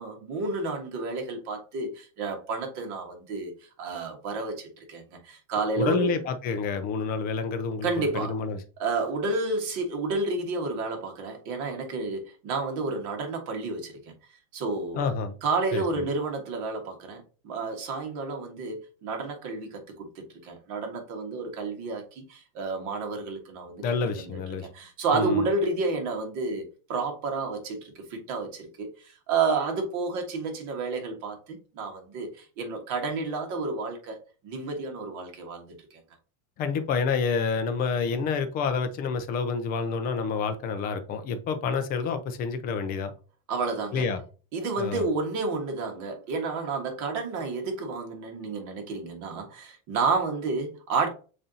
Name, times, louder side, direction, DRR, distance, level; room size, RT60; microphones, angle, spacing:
voice 1, 0.0-3.5 3.8-6.2 7.8-8.3 8.8-14.0 14.5-15.0 15.4-23.8 24.2-24.4 24.7-36.0 43.5-44.1 44.5-51.1, right 3 dB, 40° right, 1.6 m, -30 dB
voice 2, 5.8-7.9 8.1-8.6 15.0-15.4 15.7-16.0 23.8-24.7 25.1-25.5 36.6-43.1 43.9-44.2 44.8-45.1, left 5 dB, 20° left, 0.4 m, -28 dB
7.0 x 2.7 x 2.7 m
supercardioid pair, 140°, 43 cm